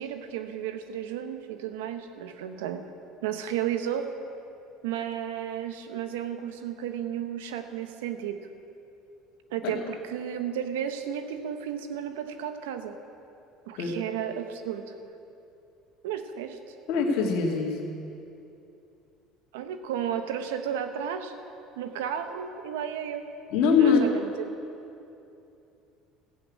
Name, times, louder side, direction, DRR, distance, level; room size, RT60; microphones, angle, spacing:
voice 1, 0.0-2.9 3.2-4.1 4.8-8.4 9.5-13.0 13.7-14.9 16.0-16.6 19.5-21.3 21.8-23.3 23.8-24.6, right 9 dB, 90° right, 8 dB, 0.9 m, -33 dB
voice 2, 16.9-17.8 23.5-24.1, left 5 dB, 70° left, -1 dB, 2.3 m, -22 dB
15.0 x 8.0 x 8.4 m, 2.8 s
supercardioid pair, 90°, 0 cm